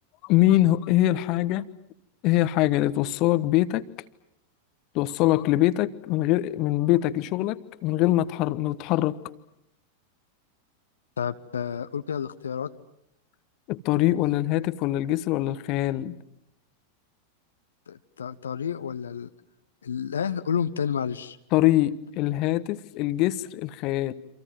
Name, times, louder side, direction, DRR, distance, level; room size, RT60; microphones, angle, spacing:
voice 1, 0.2-1.6 2.2-3.8 4.9-9.2 13.7-16.1 21.5-24.1, left 15 dB, 40° left, 15 dB, 1.3 m, -23 dB
voice 2, 11.2-12.7 17.9-19.3 19.8-21.4, left 7 dB, 70° left, 10 dB, 1.0 m, -30 dB
29.0 x 26.5 x 7.7 m, 0.75 s
figure-of-eight pair, 90°, 0 cm